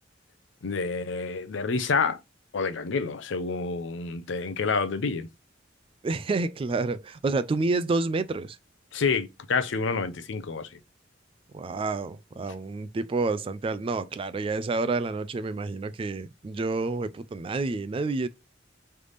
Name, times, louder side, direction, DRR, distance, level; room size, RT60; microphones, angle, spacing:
voice 1, 0.6-2.2 2.5-5.3 8.9-10.7, left 4 dB, 75° left, 0.6 m, -28 dB
voice 2, 6.0-8.6 11.5-18.3, right 3 dB, 30° right, 0.3 m, -29 dB
3.3 x 3.3 x 3.9 m
head